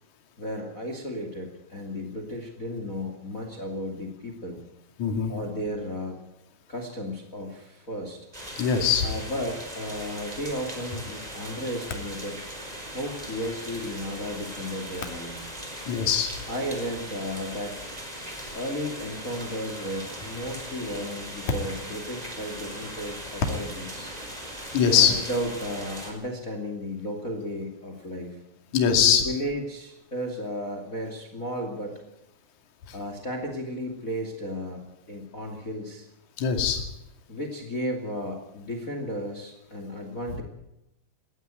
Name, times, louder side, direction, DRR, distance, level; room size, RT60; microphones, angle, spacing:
voice 1, 0.4-4.6 5.3-6.2 6.7-8.2 9.0-12.4 12.9-15.4 16.5-17.8 18.5-24.1 24.9-28.4 29.0-32.0 32.9-36.1 37.3-40.4, equal, 25° left, 5 dB, 2.1 m, -34 dB
voice 2, 5.0-5.3 8.6-9.1 15.9-16.3 18.4-18.5 24.7-25.1 28.7-29.2 32.9-33.0 36.4-36.8, left 7 dB, 45° left, 4 dB, 3.4 m, -21 dB
Rain Loop, 8.3-26.1, equal, 10° right, 3.8 m, -39 dB
19.5 x 15.0 x 9.1 m, 0.86 s
omnidirectional pair, 5.3 m